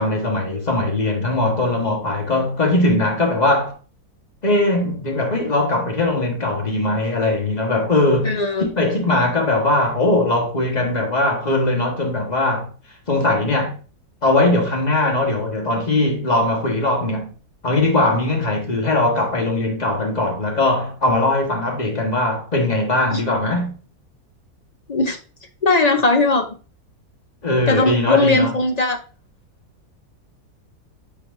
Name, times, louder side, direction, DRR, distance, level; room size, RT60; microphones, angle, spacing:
voice 1, 0.0-3.8 4.4-12.7 13.1-13.8 14.2-17.3 17.6-23.8 27.4-28.6, left 2 dB, 30° left, 1.5 m, -20 dB
voice 2, 8.2-8.7 23.1-23.2 24.9-25.2 25.6-26.5 27.7-29.0, left 3 dB, 50° left, 0.5 m, -18 dB
8.3 x 4.5 x 2.6 m
omnidirectional pair, 1.7 m